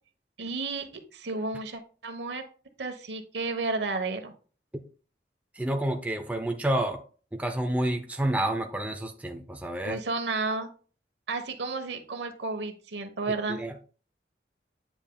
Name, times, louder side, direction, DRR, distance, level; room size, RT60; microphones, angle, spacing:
voice 1, 0.4-2.4 2.8-4.3 9.8-10.7 11.3-13.8, right 3 dB, 75° right, 1.1 m, -32 dB
voice 2, 5.6-7.0 7.3-10.0 13.5-13.8, right 1 dB, 10° right, 0.6 m, -29 dB
8.9 x 7.2 x 2.3 m
head